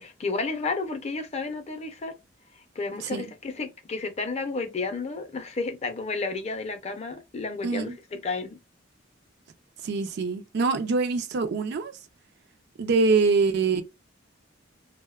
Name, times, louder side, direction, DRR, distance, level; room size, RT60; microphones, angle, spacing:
voice 1, 0.0-2.1 2.8-8.6, left 3 dB, 35° left, 0.5 m, -32 dB
voice 2, 7.6-8.0 9.8-12.0 12.8-13.8, right 4 dB, 60° right, 0.4 m, -24 dB
2.7 x 2.1 x 2.2 m
head